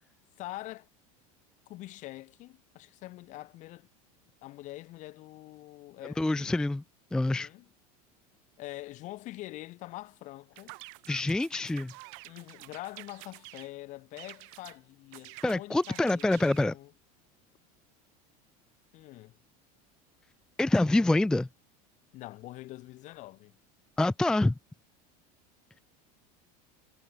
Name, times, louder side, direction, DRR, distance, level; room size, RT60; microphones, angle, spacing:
voice 1, 0.4-0.9 1.7-3.9 4.4-6.5 7.2-7.7 8.6-10.8 12.2-16.9 18.9-19.4 22.1-23.5, left 17 dB, 40° left, 1.3 m, -44 dB
voice 2, 6.2-6.8 7.1-7.5 11.1-11.9 15.4-16.7 20.6-21.5 24.0-24.5, left 2 dB, 5° left, 0.5 m, -26 dB
sound 1, 10.6-13.7 14.2-14.8 15.1-16.7, right 38 dB, 65° right, 6.3 m, -49 dB
supercardioid pair, 155°, 19 cm